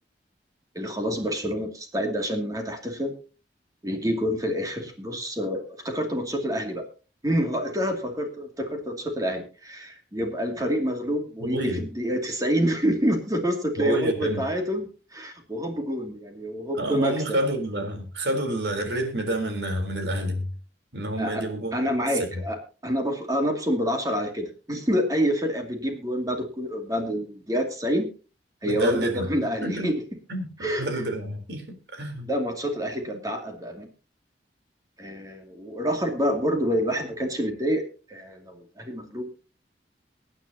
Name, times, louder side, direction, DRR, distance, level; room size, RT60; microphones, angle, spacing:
voice 1, 0.7-3.1 3.8-6.8 7.2-17.4 21.2-21.4 21.7-22.6 22.8-28.1 28.6-30.0 30.6-31.0 32.3-33.9 35.0-37.8 38.1-39.3, equal, 20° right, 3 dB, 2.5 m, -27 dB
voice 2, 11.4-11.8 13.8-14.4 16.7-20.5 20.9-21.8 22.3-22.4 28.6-29.3 29.6-29.9 30.3-32.3, right 1 dB, 75° right, 5 dB, 3.8 m, -28 dB
23.5 x 9.6 x 2.8 m, 0.34 s
head